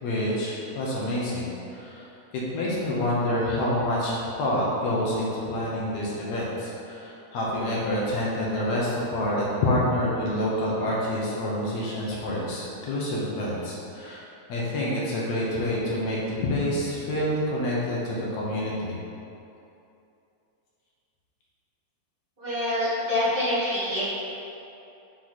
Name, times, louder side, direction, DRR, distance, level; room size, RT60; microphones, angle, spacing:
voice 1, 0.0-2.1 2.5-14.2 14.5-19.0, left 1 dB, 70° left, -6 dB, 2.1 m, -27 dB
voice 2, 22.4-24.1, left 1 dB, 50° right, -12 dB, 0.6 m, -26 dB
6.3 x 4.5 x 4.0 m, 2.8 s
omnidirectional pair, 3.6 m